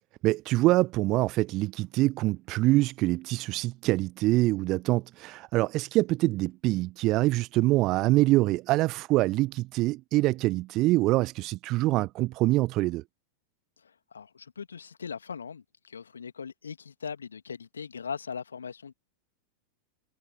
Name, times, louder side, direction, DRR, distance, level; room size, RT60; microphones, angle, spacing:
voice 1, 0.2-13.0, right 19 dB, 40° right, 0.6 m, -25 dB
voice 2, 13.8-18.9, left 6 dB, 70° left, 2.4 m, -40 dB
figure-of-eight pair, 90°, 0 cm